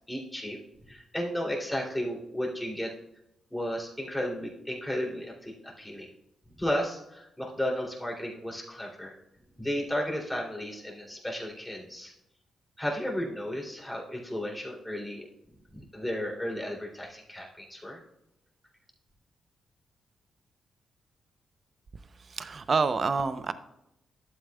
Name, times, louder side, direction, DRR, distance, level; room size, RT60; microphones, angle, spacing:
voice 1, 0.1-0.6 0.9-2.9 3.5-6.1 6.6-9.1 9.6-12.1 12.8-15.3 15.7-18.0, equal, 10° left, -2 dB, 2.8 m, -33 dB
voice 2, 22.2-23.5, right 4 dB, 50° right, 12 dB, 0.6 m, -28 dB
11.5 x 7.7 x 2.3 m, 0.85 s
supercardioid pair, 60°, 0 cm